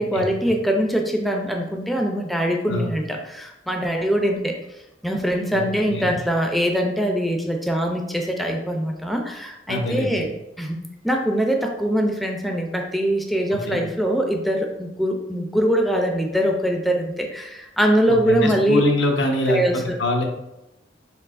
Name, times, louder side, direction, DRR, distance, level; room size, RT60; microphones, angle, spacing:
voice 1, 0.0-4.5 5.0-10.3 10.6-10.8 11.0-18.8 19.5-20.0, equal, ahead, 2 dB, 0.4 m, -22 dB
voice 2, 5.5-6.2 9.7-10.3 13.5-13.8 18.2-20.2, left 2 dB, 85° left, 2 dB, 0.7 m, -24 dB
4.5 x 3.5 x 2.5 m, 0.91 s
head